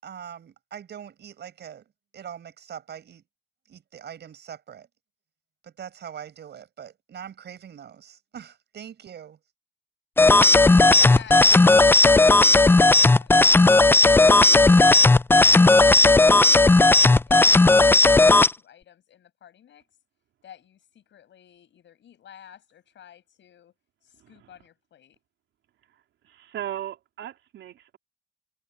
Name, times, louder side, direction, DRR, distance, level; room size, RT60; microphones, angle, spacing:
voice 1, 0.0-1.9 2.1-3.2 3.7-4.9 5.6-9.4, right 8 dB, 60° right, 5.6 m, -42 dB
sound 1, 10.2-18.5, left 3 dB, 10° left, 0.4 m, -15 dB
voice 2, 10.5-11.5 16.5-19.9 20.4-23.7 24.0-25.2, left 9 dB, 65° left, 7.7 m, -50 dB
voice 3, 26.2-28.0, right 11 dB, 75° right, 3.8 m, -37 dB
cardioid pair, 90°, 20 cm